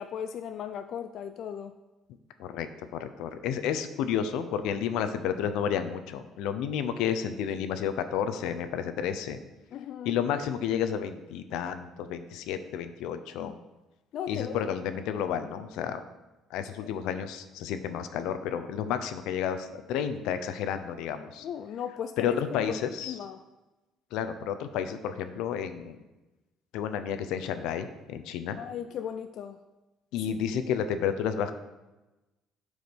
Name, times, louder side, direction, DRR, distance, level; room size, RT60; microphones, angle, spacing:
voice 1, 0.0-1.7 9.7-10.2 13.4-13.6 14.1-14.6 16.8-16.9 21.4-22.8 23.1-23.4 28.6-29.6, left 8 dB, 50° left, 9 dB, 0.4 m, -37 dB
voice 2, 2.9-9.4 10.0-13.6 14.3-16.0 16.5-21.5 22.2-23.2 24.1-26.0 26.7-28.6 30.1-31.5, left 8 dB, 85° left, 10 dB, 0.8 m, -31 dB
12.0 x 4.9 x 5.4 m, 1.1 s
cardioid pair, 155°, 0 cm